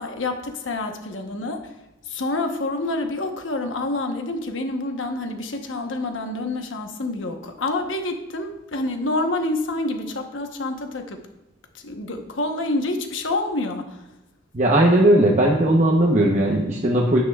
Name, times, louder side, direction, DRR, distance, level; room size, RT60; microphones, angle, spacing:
voice 1, 0.0-1.6 2.1-11.2 11.8-14.0, left 2 dB, 85° left, 5 dB, 1.0 m, -27 dB
voice 2, 14.5-17.2, right 1 dB, 40° right, -2 dB, 0.9 m, -17 dB
9.7 x 9.6 x 2.4 m, 0.97 s
head